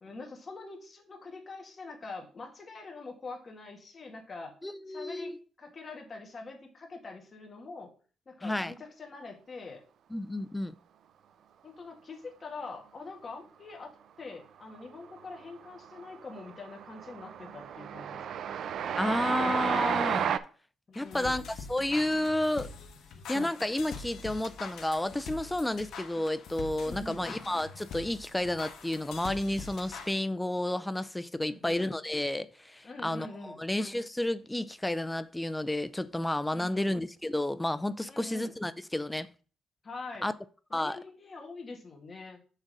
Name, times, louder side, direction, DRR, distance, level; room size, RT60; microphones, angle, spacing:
voice 1, 0.0-4.5 4.9-7.9 8.3-9.8 11.6-13.9 14.2-18.6 20.9-21.5 26.8-27.3 31.4-31.8 32.8-33.6 36.5-37.0 38.1-38.5 39.8-40.3 40.7-42.4, left 3 dB, 35° left, 2.0 m, -44 dB
voice 2, 4.6-5.4 8.4-8.7 10.1-10.7 19.0-20.3 20.9-21.4 21.7-22.7 23.3-39.3 40.2-40.3 40.7-41.0, left 1 dB, 10° left, 0.5 m, -31 dB
Train, 14.7-15.2 15.5-20.4, right 8 dB, 65° right, 0.4 m, -32 dB
sound 1, 20.9-30.1, left 5 dB, 70° left, 1.3 m, -44 dB
6.5 x 3.7 x 6.2 m
cardioid pair, 115°, 0 cm